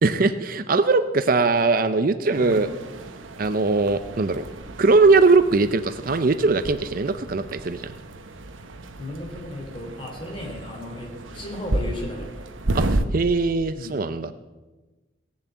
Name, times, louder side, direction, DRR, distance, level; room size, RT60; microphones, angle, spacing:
voice 1, 0.0-2.7 3.4-4.4 4.8-7.9 12.7-14.3, right 3 dB, 45° right, 11 dB, 0.5 m, -20 dB
sound 1, 2.3-13.1, right 1 dB, 90° right, 1.0 m, -32 dB
voice 2, 9.0-12.3 13.7-14.0, left 1 dB, 25° left, 1 dB, 3.3 m, -35 dB
17.5 x 7.2 x 8.2 m, 1.2 s
head